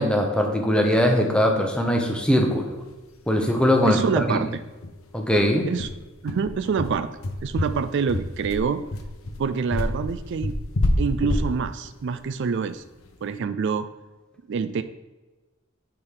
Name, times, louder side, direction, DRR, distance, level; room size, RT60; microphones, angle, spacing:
voice 1, 0.0-2.8 3.3-4.4 5.1-5.6, equal, 5° left, 2 dB, 0.9 m, -21 dB
sound 1, 2.9-3.0 3.3-3.4 3.7-3.9 4.3-4.4 4.8-13.2, left 1 dB, 75° left, 0.9 m, -28 dB
voice 2, 3.8-4.5 5.7-5.9 6.2-7.1 7.4-8.8 9.4-10.5 11.0-12.8 13.2-13.9 14.5-14.8, right 6 dB, 55° right, 12 dB, 0.3 m, -26 dB
10.0 x 4.5 x 3.8 m, 1.2 s
head